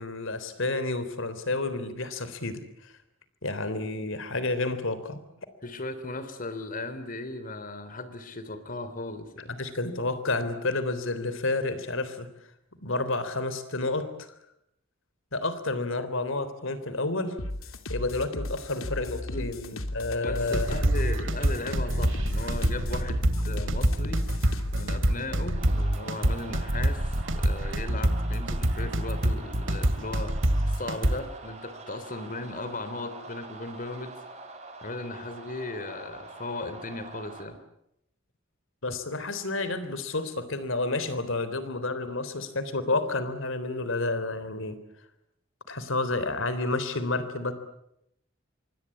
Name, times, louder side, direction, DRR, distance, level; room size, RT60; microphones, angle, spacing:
voice 1, 0.0-2.9 3.4-5.2 9.6-12.3 12.8-14.3 15.3-17.4 17.9-20.7 38.8-44.8 45.7-47.5, left 2 dB, 70° left, 12 dB, 3.6 m, -30 dB
voice 2, 5.6-9.6 19.3-19.6 20.2-24.3 24.7-30.4 30.7-34.1 34.8-37.6, left 2 dB, 45° left, 12 dB, 3.5 m, -37 dB
sound 1, 17.4-25.0, left 1 dB, 85° left, 2.7 m, -36 dB
sound 2, 20.4-31.2, right 1 dB, 65° right, 2.6 m, -26 dB
sound 3, 25.5-37.4, right 3 dB, 35° right, 7.0 m, -45 dB
27.0 x 24.0 x 8.6 m, 0.79 s
head